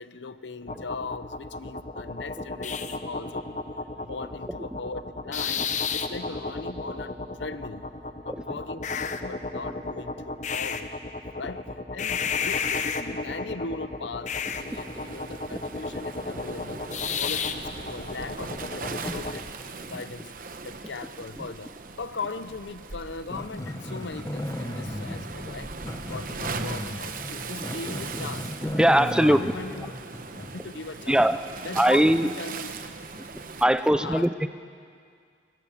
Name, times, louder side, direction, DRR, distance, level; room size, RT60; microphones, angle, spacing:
voice 1, 0.0-3.6 4.0-7.9 8.2-11.0 11.4-16.9 17.1-19.4 19.8-20.3 20.6-21.7 22.0-25.7 26.1-28.5 28.9-29.9 30.5-31.3 31.6-32.7 33.9-34.3, left 4 dB, 75° left, 13 dB, 0.7 m, -39 dB
sound 1, 0.6-19.4, left 4 dB, 40° left, 0.8 m, -32 dB
Waves surf, 14.5-33.6, right 4 dB, 50° right, 1.0 m, -40 dB
Growling, 23.3-30.6, left 1 dB, 15° left, 1.1 m, -36 dB
voice 2, 25.1-25.5 27.6-27.8 28.7-29.5 31.1-31.4 31.8-32.3 33.6-34.5, right 1 dB, 5° right, 11 dB, 0.5 m, -22 dB
23.0 x 20.0 x 7.2 m, 2.2 s
head